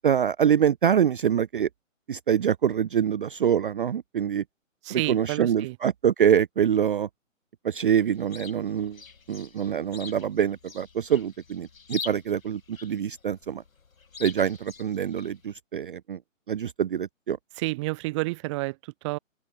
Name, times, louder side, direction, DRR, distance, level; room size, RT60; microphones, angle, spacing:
voice 1, 0.0-1.7 2.1-4.4 4.9-7.1 7.6-9.0 9.3-13.6 14.2-16.2 16.5-17.4, right 8 dB, 40° right, 0.6 m, -25 dB
voice 2, 4.8-5.8 17.6-19.2, right 22 dB, 20° right, 1.4 m, -30 dB
Chirp tweet, 8.0-15.6, left 5 dB, 85° left, 1.6 m, -44 dB
open air
figure-of-eight pair, 145°, 40 cm